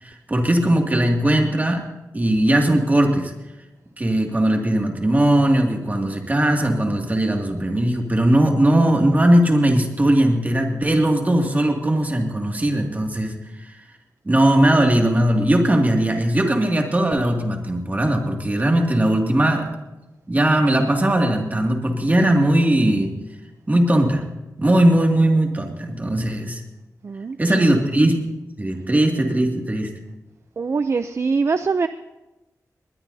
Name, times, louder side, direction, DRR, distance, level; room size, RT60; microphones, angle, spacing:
voice 1, 0.0-1.8 2.1-3.3 4.0-13.7 14.3-19.7 20.3-23.2 23.7-24.3 24.6-26.6 27.4-28.2 28.6-29.9, right 1 dB, 25° right, 1 dB, 2.2 m, -19 dB
voice 2, 27.0-27.7 30.6-31.9, right 4 dB, 45° right, 10 dB, 0.5 m, -23 dB
20.5 x 20.0 x 2.7 m, 1.0 s
wide cardioid pair, 135°, 6 cm